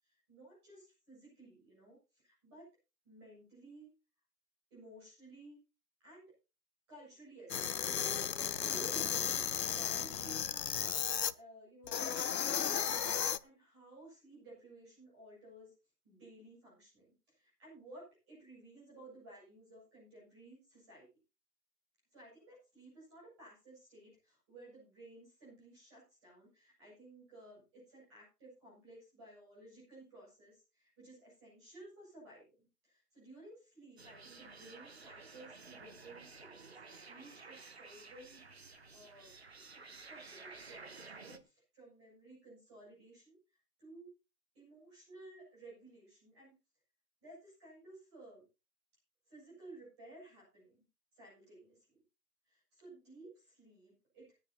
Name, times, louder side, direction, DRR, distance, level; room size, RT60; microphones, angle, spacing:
voice 1, 0.0-2.7 3.0-3.9 4.7-5.6 6.0-6.3 6.9-9.3 9.6-10.8 11.3-13.1 13.4-15.7 16.0-21.1 22.1-38.4 38.9-39.3 39.7-43.4 43.8-44.1 44.5-46.5 47.2-48.4 49.3-50.8 51.2-52.0 52.5-54.3, right 2 dB, 15° right, -6 dB, 7.7 m, -56 dB
sound 1, 7.5-11.3 11.9-13.4, left 8 dB, 80° left, 0.9 m, -34 dB
sound 2, 34.0-41.4, right 4 dB, 40° right, 1.0 m, -53 dB
19.0 x 10.5 x 2.9 m, 0.30 s
hypercardioid pair, 175°, 48 cm